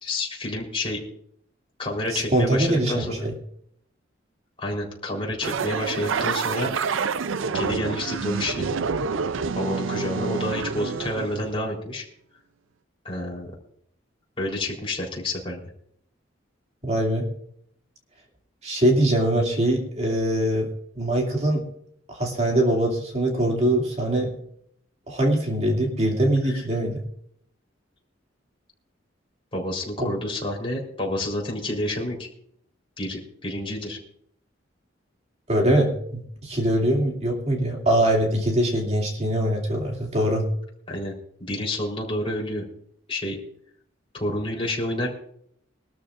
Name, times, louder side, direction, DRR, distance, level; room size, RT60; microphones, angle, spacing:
voice 1, 0.0-1.0 1.8-3.3 4.6-6.7 7.5-8.7 9.5-12.0 13.0-13.5 14.4-15.6 26.4-26.6 29.5-32.2 33.0-34.0 40.9-41.1 41.4-42.6 43.1-43.4 44.1-45.1, left 1 dB, 30° left, -2 dB, 3.9 m, -29 dB
voice 2, 2.1-3.3 16.8-17.3 18.6-20.7 21.0-21.7 22.1-24.3 25.1-27.0 30.0-30.1 35.5-40.5, right 1 dB, 35° right, 0 dB, 2.6 m, -23 dB
sound 1, 5.4-11.5, right 5 dB, 85° right, 0.5 m, -28 dB
22.0 x 13.0 x 2.5 m, 0.67 s
head